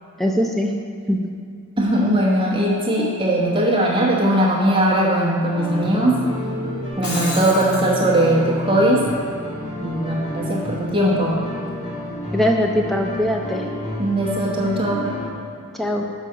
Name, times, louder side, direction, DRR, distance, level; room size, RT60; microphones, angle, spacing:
voice 1, 0.2-0.7 1.1-1.3 12.3-13.6 15.7-16.0, equal, ahead, 1 dB, 0.4 m, -21 dB
voice 2, 1.8-6.2 7.0-9.1 9.8-11.4 14.0-15.1, right 1 dB, 20° right, -4 dB, 1.0 m, -19 dB
sound 1, 5.5-15.3, left 1 dB, 35° left, 1.1 m, -30 dB
Shatter, 6.8-7.9, left 2 dB, 80° left, 1.4 m, -30 dB
6.2 x 4.0 x 5.6 m, 2.5 s
head